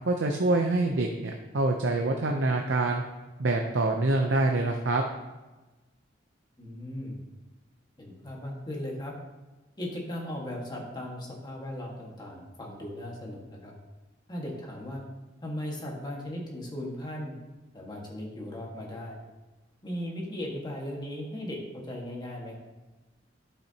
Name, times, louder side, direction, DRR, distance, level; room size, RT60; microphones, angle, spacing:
voice 1, 0.0-3.0 3.4-5.0, right 2 dB, 85° right, 2 dB, 0.7 m, -26 dB
voice 2, 6.6-7.2 8.0-9.1 9.8-13.7 14.3-15.0 15.4-17.3 17.7-19.2 19.8-22.6, left 1 dB, 25° left, -2 dB, 1.7 m, -37 dB
11.5 x 6.6 x 2.9 m, 1.2 s
head